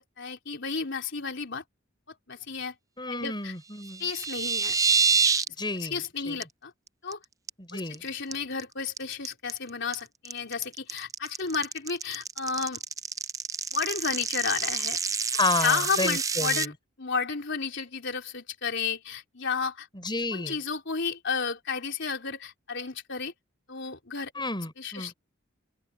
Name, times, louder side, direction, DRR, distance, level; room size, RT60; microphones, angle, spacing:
voice 1, 0.0-1.6 2.3-2.7 3.1-3.5 4.0-4.8 5.8-6.7 7.0-7.2 7.7-12.8 13.7-15.0 15.6-16.7 17.0-19.9 20.3-23.3 23.7-24.3 24.8-25.1, left 5 dB, 60° left, 3.9 m, -32 dB
voice 2, 3.0-4.1 5.6-6.4 7.6-8.1 15.3-16.7 19.9-20.6 24.3-25.1, left 3 dB, 20° left, 6.4 m, -31 dB
sound 1, 3.8-5.5 5.8-6.1 6.4-6.5 6.9-7.1 7.5-7.9 8.3-16.6, right 5 dB, 15° right, 0.5 m, -27 dB
open air
head